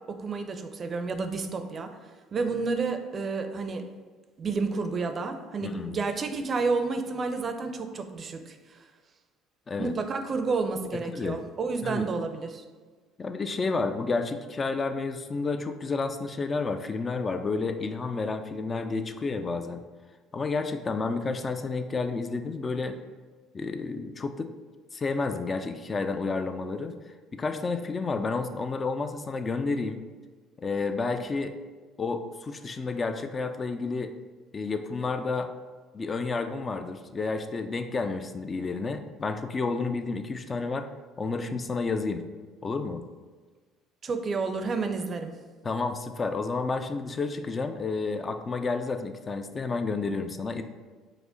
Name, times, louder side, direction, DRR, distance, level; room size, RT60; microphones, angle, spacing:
voice 1, 0.1-1.9 2.3-3.9 4.4-8.8 9.8-12.6 44.0-45.3, right 4 dB, 40° right, 7 dB, 0.4 m, -30 dB
voice 2, 5.6-6.0 9.7-9.9 11.1-11.4 11.8-12.1 13.2-19.8 20.3-23.0 23.5-24.5 24.9-26.9 27.3-30.0 30.6-31.5 32.0-34.1 34.5-35.5 35.9-40.9 41.2-42.2 42.6-43.0 45.6-50.6, left 4 dB, 30° left, 8 dB, 0.3 m, -30 dB
4.8 x 2.1 x 3.8 m, 1.4 s
hypercardioid pair, 70°, 0 cm